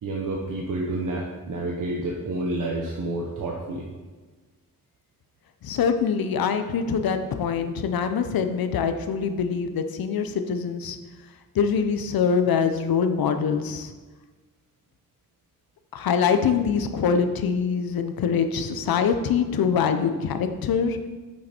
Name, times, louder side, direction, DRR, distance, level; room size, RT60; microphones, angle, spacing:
voice 1, 0.0-3.9, right 2 dB, 60° right, -2 dB, 1.0 m, -29 dB
voice 2, 5.6-11.0 11.5-13.9 15.9-21.0, left 6 dB, 80° left, 8 dB, 0.8 m, -24 dB
8.6 x 6.6 x 4.4 m, 1.3 s
wide cardioid pair, 155°, 35 cm